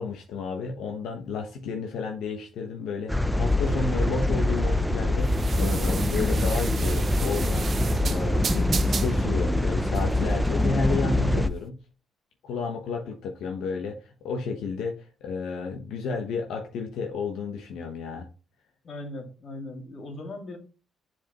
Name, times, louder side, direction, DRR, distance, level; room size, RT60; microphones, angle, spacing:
voice 1, 0.0-11.7 12.4-18.3, left 4 dB, 80° left, 2 dB, 1.1 m, -32 dB
sound 1, 3.1-11.5, left 1 dB, ahead, 0.6 m, -24 dB
sound 2, 3.6-11.6, right 6 dB, 45° right, 0.5 m, -37 dB
voice 2, 18.8-20.6, left 2 dB, 55° left, 4 dB, 2.2 m, -38 dB
7.5 x 4.8 x 3.0 m, 0.36 s
cardioid pair, 90°, 0 cm